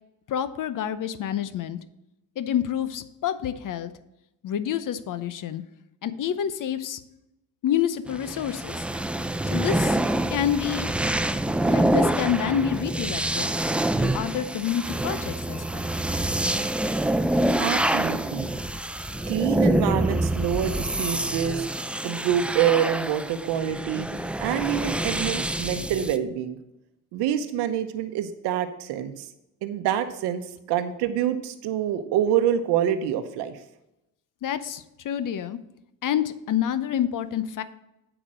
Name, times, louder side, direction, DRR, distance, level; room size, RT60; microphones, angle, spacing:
voice 1, 0.3-1.8 2.4-3.9 4.4-5.6 6.0-7.0 7.6-8.9 9.5-10.0 10.3-10.9 11.7-13.5 14.0-15.9 34.4-35.6 36.0-37.6, left 9 dB, 55° left, 13 dB, 0.8 m, -28 dB
sound 1, 8.1-26.2, right 1 dB, 5° right, 0.4 m, -26 dB
voice 2, 17.6-18.4 19.3-21.7 22.0-24.1 24.4-26.6 27.1-29.3 29.6-33.6, right 9 dB, 80° right, 9 dB, 0.9 m, -26 dB
8.6 x 5.0 x 6.3 m, 0.88 s
supercardioid pair, 80°, 39 cm